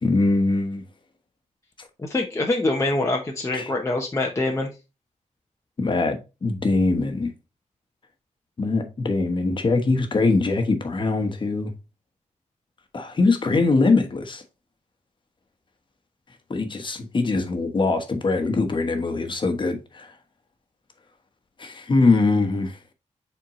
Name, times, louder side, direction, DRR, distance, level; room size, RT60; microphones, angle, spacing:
voice 1, 0.0-0.8 3.5-3.7 5.8-7.3 8.6-11.7 12.9-14.4 16.5-20.1 21.6-22.8, left 3 dB, 40° left, 1.2 m, -22 dB
voice 2, 2.0-4.7, left 2 dB, 20° left, 0.8 m, -24 dB
7.3 x 4.4 x 3.0 m
wide cardioid pair, 160°, 13 cm